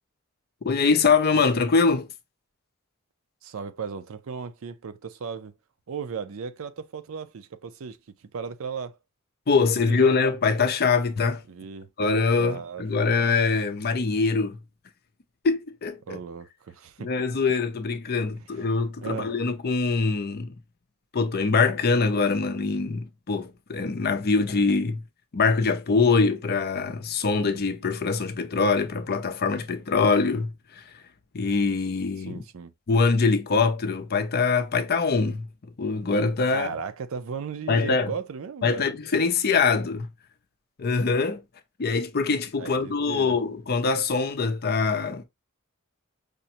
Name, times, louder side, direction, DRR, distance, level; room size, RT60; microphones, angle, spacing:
voice 1, 0.6-2.1 9.5-11.4 12.0-14.6 15.4-16.2 17.0-20.5 21.1-25.0 25.3-30.8 31.3-32.4 32.9-35.5 35.8-36.7 37.7-38.1 38.6-40.1 40.8-41.4 41.8-45.2, left 4 dB, 45° left, 0.5 m, -23 dB
voice 2, 3.4-5.5 5.9-9.0 9.9-10.2 11.5-11.9 12.4-13.2 16.1-17.4 18.4-18.5 19.0-19.3 32.2-32.7 36.5-38.9 42.6-43.4, right 6 dB, 65° right, 0.5 m, -36 dB
5.0 x 2.1 x 2.7 m
head